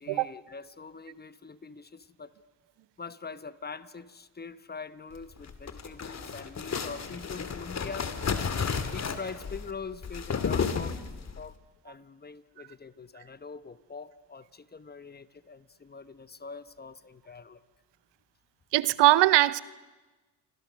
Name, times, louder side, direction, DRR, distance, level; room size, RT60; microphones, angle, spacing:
voice 1, 0.0-2.3 3.0-8.1 8.8-11.0 11.4-11.6 11.8-17.6, left 4 dB, 20° left, 14 dB, 1.1 m, -43 dB
sound 1, 5.4-11.4, left 6 dB, 40° left, 2.3 m, -32 dB
voice 2, 18.7-19.6, right 16 dB, 75° right, 18 dB, 0.9 m, -21 dB
29.5 x 24.5 x 6.4 m, 1.2 s
supercardioid pair, 80°, 43 cm